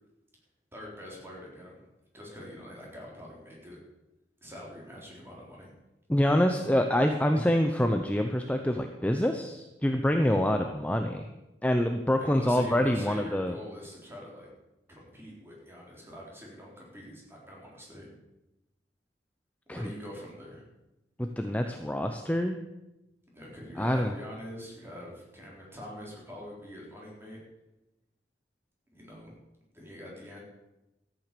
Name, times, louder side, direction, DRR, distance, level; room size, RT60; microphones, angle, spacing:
voice 1, 0.7-1.8 2.1-3.8 4.4-5.7 12.2-14.5 14.9-18.1 19.7-20.6 23.3-27.4 28.9-29.3 29.7-30.4, equal, 15° right, -3 dB, 3.7 m, -44 dB
voice 2, 6.1-11.3 11.6-13.6 19.7-19.9 21.2-22.6 23.8-24.1, left 1 dB, 10° left, 5 dB, 0.7 m, -26 dB
13.5 x 9.0 x 6.8 m, 0.97 s
head